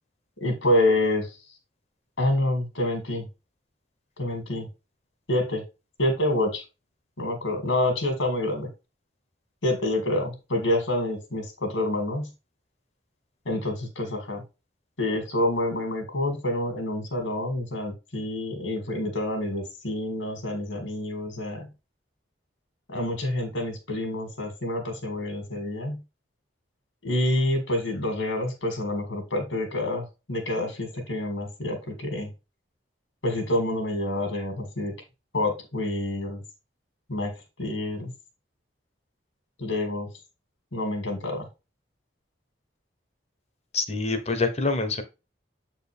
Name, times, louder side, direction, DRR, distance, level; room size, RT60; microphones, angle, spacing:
voice 1, 0.4-1.3 2.2-3.3 4.2-4.7 5.3-5.6 6.0-6.6 7.2-8.7 9.6-12.3 13.5-14.4 15.0-21.7 22.9-26.0 27.0-32.3 33.2-34.9 35.3-36.4 37.1-37.3 37.6-38.1 39.6-40.1 40.7-41.5, left 1 dB, 85° left, 2.4 m, -27 dB
voice 2, 43.7-45.0, left 3 dB, 35° left, 1.0 m, -26 dB
7.8 x 4.5 x 3.4 m
head